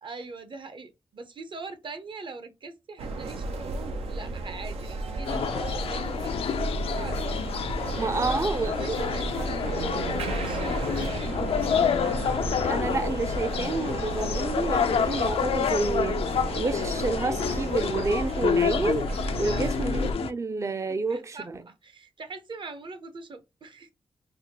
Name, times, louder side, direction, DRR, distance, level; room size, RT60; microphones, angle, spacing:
voice 1, 0.0-7.4 8.1-9.7 10.2-11.5 19.4-19.8 20.9-23.9, right 4 dB, 55° right, 0.8 m, -42 dB
sound 1, 3.0-20.1, right 2 dB, 90° right, 0.5 m, -33 dB
sound 2, 5.3-20.3, left 7 dB, 75° left, 0.4 m, -29 dB
voice 2, 8.0-9.8 12.6-16.3 16.6-19.1 19.4-21.6, right 3 dB, 30° right, 0.4 m, -29 dB
4.1 x 2.1 x 2.9 m
cardioid pair, 55°, 10 cm